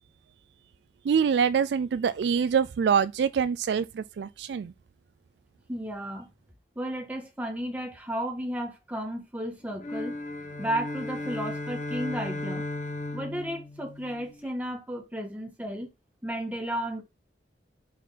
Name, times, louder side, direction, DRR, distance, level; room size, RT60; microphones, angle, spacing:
voice 1, 1.1-4.7, right 7 dB, 70° right, 0.3 m, -25 dB
voice 2, 5.7-6.3 6.8-10.1 10.6-12.6 13.1-15.9 16.2-17.0, equal, 10° right, 1.8 m, -33 dB
sound 1, 9.8-14.5, left 2 dB, 45° left, 1.0 m, -35 dB
6.0 x 4.6 x 4.1 m
head